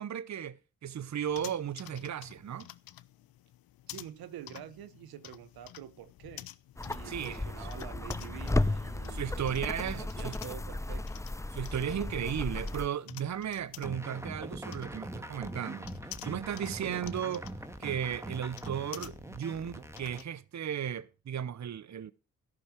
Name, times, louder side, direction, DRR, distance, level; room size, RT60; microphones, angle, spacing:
voice 1, 0.0-2.7 7.0-7.4 9.1-10.4 11.5-15.9 16.2-17.4 17.8-22.1, right 9 dB, 50° right, 0.8 m, -35 dB
sound 1, 1.3-20.3, left 14 dB, 75° left, 0.7 m, -51 dB
voice 2, 3.9-6.5 6.8-11.2 16.8-17.0, right 11 dB, 80° right, 0.9 m, -47 dB
sound 2, 6.8-12.9, left 2 dB, 10° left, 0.6 m, -34 dB
sound 3, 13.8-20.2, right 1 dB, 10° right, 1.7 m, -42 dB
13.5 x 11.5 x 4.5 m
supercardioid pair, 40°, 36 cm